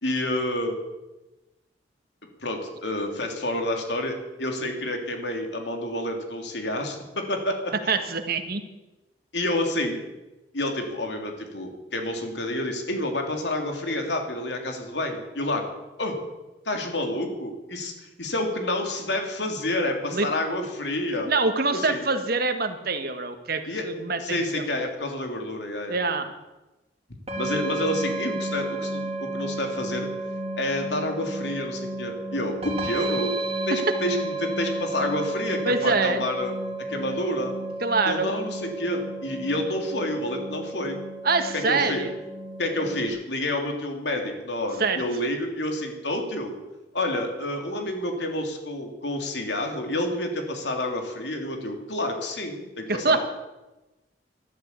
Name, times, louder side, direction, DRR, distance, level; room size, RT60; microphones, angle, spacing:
voice 1, 0.0-0.8 2.4-8.0 9.3-10.0 10.5-15.7 16.0-16.1 16.6-21.3 21.7-22.0 23.7-23.8 24.2-26.0 27.4-30.1 30.6-33.3 33.7-36.5 36.9-37.5 38.0-41.0 41.5-42.0 42.6-46.5 46.9-53.2, left 1 dB, 70° left, 3 dB, 3.2 m, -29 dB
voice 2, 7.9-8.6 20.1-20.3 21.3-24.6 25.9-26.3 35.6-36.2 37.8-38.3 41.2-42.1 44.8-45.0 52.9-53.2, right 3 dB, 55° right, 7 dB, 1.7 m, -25 dB
sound 1, 27.3-43.1, right 2 dB, 35° right, 3.2 m, -32 dB
13.0 x 12.5 x 8.3 m, 1.1 s
head